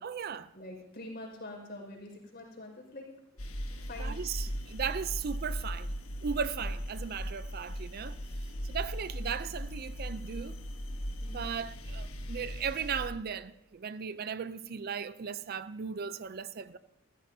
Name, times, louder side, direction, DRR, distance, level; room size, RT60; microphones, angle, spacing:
voice 1, 0.0-0.5 4.0-5.9 6.2-8.2 8.6-10.6 11.3-16.8, right 7 dB, 45° right, 0.4 m, -37 dB
voice 2, 0.5-3.0 3.8-4.2 11.2-11.5, left 1 dB, 50° left, 5.1 m, -45 dB
sound 1, 3.4-13.1, equal, 85° left, 1.6 m, -38 dB
27.5 x 14.5 x 2.7 m
head